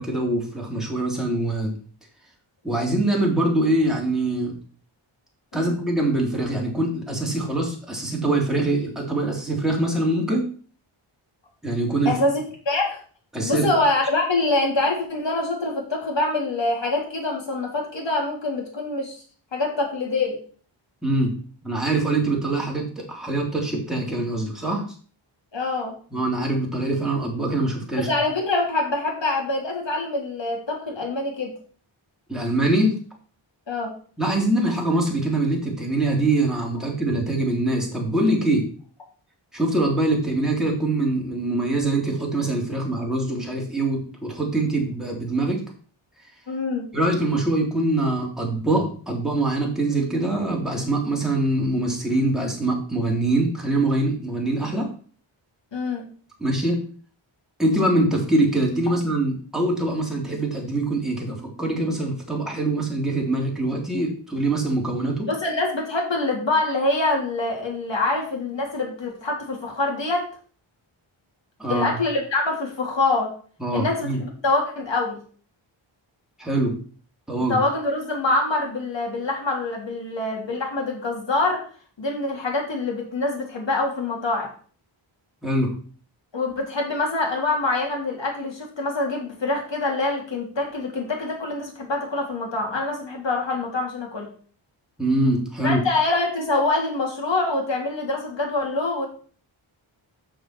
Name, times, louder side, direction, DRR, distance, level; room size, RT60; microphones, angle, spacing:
voice 1, 0.0-1.7 2.6-4.6 5.5-10.5 11.6-12.1 13.3-13.7 21.0-21.3 21.6-24.8 26.1-28.1 32.3-33.0 34.2-38.7 39.5-45.6 46.9-54.9 56.4-56.8 57.6-65.3 71.6-72.0 73.6-74.2 76.4-76.7 77.3-77.6 85.4-85.7 95.0-95.8, right 2 dB, ahead, -2 dB, 3.6 m, -23 dB
voice 2, 12.1-13.0 13.4-19.2 19.5-20.4 25.5-25.9 28.0-31.5 33.7-33.9 46.5-46.9 55.7-56.0 65.3-70.3 71.7-73.3 73.7-75.2 77.5-81.6 82.0-84.5 86.3-94.3 95.6-99.1, left 2 dB, 60° left, 0 dB, 3.5 m, -25 dB
6.7 x 6.4 x 6.2 m, 0.43 s
cardioid pair, 70°, 49 cm